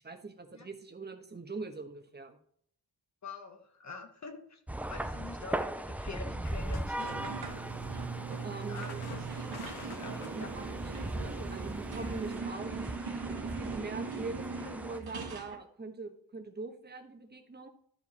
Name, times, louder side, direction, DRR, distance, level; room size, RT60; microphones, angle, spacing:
voice 1, 0.0-2.4 8.4-9.0 10.3-10.4 10.8-12.8 13.4-17.7, right 3 dB, 25° right, 5 dB, 1.2 m, -42 dB
voice 2, 3.2-4.6 4.9-7.6 8.7-9.5 9.9-10.5 11.1-11.4, left 4 dB, 40° left, 4 dB, 1.1 m, -46 dB
sound 1, 4.7-15.0, right 1 dB, 5° right, 0.4 m, -39 dB
sound 2, 6.4-12.4, left 5 dB, 65° left, 1.3 m, -52 dB
sound 3, 7.0-15.6, right 5 dB, 65° right, 1.4 m, -40 dB
13.0 x 4.7 x 4.3 m, 0.63 s
wide cardioid pair, 145°, 40 cm